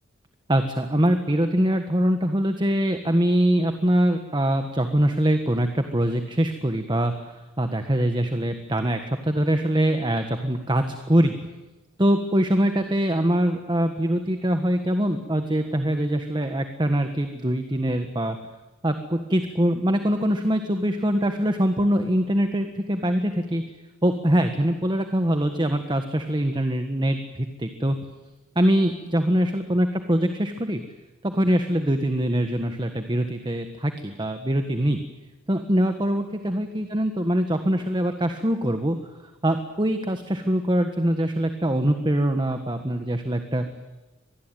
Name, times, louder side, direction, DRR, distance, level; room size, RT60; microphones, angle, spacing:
voice 1, 0.5-11.4 12.0-18.4 18.8-23.6 24.0-28.0 28.5-30.8 31.2-35.0 35.5-39.0 39.4-43.7, right 1 dB, 20° right, 7 dB, 1.5 m, -23 dB
25.0 x 20.0 x 9.3 m, 1.1 s
head